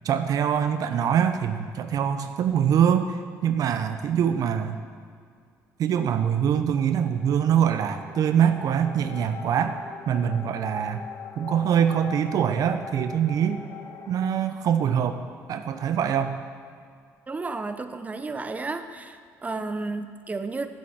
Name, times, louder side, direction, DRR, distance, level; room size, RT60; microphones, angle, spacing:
voice 1, 0.0-4.8 5.8-9.8 10.1-11.1 11.4-13.6 14.1-15.2 15.5-16.4, right 8 dB, 60° right, 9 dB, 0.6 m, -24 dB
sound 1, 7.2-14.3, left 6 dB, 50° left, 1.1 m, -42 dB
voice 2, 17.3-20.7, right 3 dB, 20° right, 9 dB, 0.7 m, -32 dB
7.7 x 7.2 x 7.5 m, 2.1 s
supercardioid pair, 75°, 7 cm